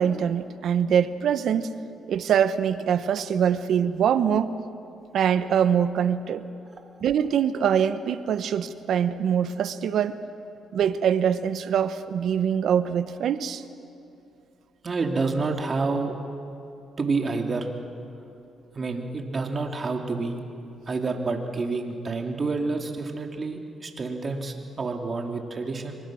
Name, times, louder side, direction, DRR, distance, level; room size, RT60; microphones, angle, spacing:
voice 1, 0.0-1.7 2.1-4.6 5.1-6.4 7.0-10.2 10.7-13.6, right 8 dB, 70° right, 12 dB, 1.1 m, -23 dB
voice 2, 14.8-16.1 17.0-17.7 18.7-20.4 20.9-26.0, right 3 dB, 35° right, 3 dB, 3.0 m, -28 dB
27.5 x 24.5 x 6.4 m, 2.7 s
cardioid pair, 90°, 0 cm